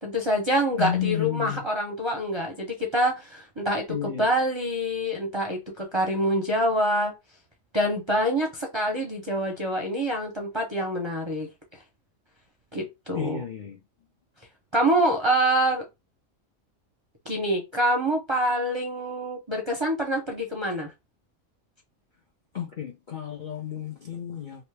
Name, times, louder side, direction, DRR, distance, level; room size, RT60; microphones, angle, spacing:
voice 1, 0.0-7.1 7.7-11.5 12.7-13.4 14.7-15.8 17.2-20.9, right 1 dB, 30° right, 0.5 m, -26 dB
voice 2, 0.8-1.6 3.9-4.3 13.1-13.8 22.5-24.7, left 10 dB, 50° left, 0.6 m, -31 dB
3.0 x 2.8 x 3.2 m
omnidirectional pair, 1.4 m